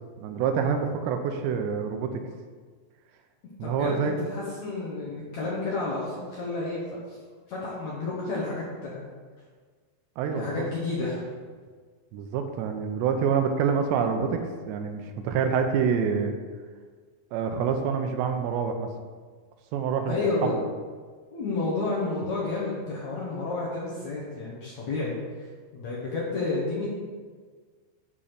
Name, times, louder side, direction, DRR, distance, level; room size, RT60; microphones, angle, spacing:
voice 1, 0.2-2.2 3.6-4.2 10.2-10.5 12.1-14.4 14.7-16.3 17.3-18.9 19.7-20.6, right 6 dB, 85° right, 6 dB, 2.9 m, -26 dB
voice 2, 3.6-6.8 7.1-7.2 7.5-9.1 10.3-11.2 20.1-20.6 21.3-25.1 25.7-26.9, left 3 dB, 60° left, -6 dB, 2.0 m, -30 dB
11.0 x 4.2 x 5.0 m, 1.5 s
omnidirectional pair, 4.9 m